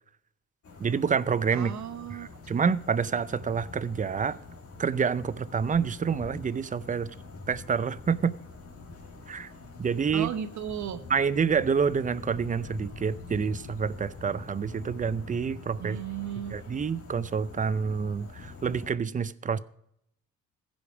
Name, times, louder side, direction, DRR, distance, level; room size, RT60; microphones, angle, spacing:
sound 1, 0.6-18.9, left 3 dB, 50° left, 2.1 m, -45 dB
voice 1, 0.8-1.7 2.1-4.4 4.8-7.1 7.5-8.3 9.3-9.5 9.8-10.3 11.1-16.0 16.5-19.6, right 6 dB, 25° right, 0.5 m, -28 dB
voice 2, 1.5-2.3 10.1-11.0 15.8-16.6, right 9 dB, 70° right, 1.1 m, -35 dB
15.5 x 5.2 x 4.8 m
cardioid pair, 90°, 30 cm